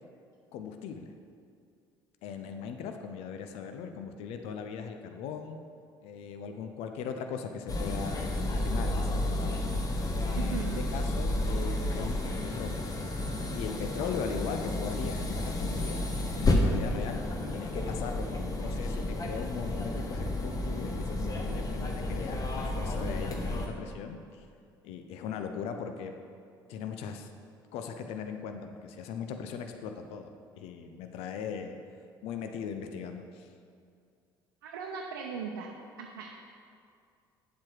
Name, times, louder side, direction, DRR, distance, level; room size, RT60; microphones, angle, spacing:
voice 1, 0.5-1.1 2.2-5.6 6.0-9.7 10.3-12.2 12.5-12.9 13.5-24.5 24.8-26.1 26.7-27.3 27.7-31.8 32.2-33.5, left 6 dB, 65° left, 6 dB, 0.7 m, -39 dB
sound 1, 7.7-23.7, left 1 dB, 35° left, 1.4 m, -31 dB
voice 2, 10.4-10.8 34.6-35.7 36.0-36.4, right 6 dB, 80° right, 0 dB, 0.7 m, -38 dB
9.2 x 7.5 x 4.7 m, 2.3 s
hypercardioid pair, 60°, 11 cm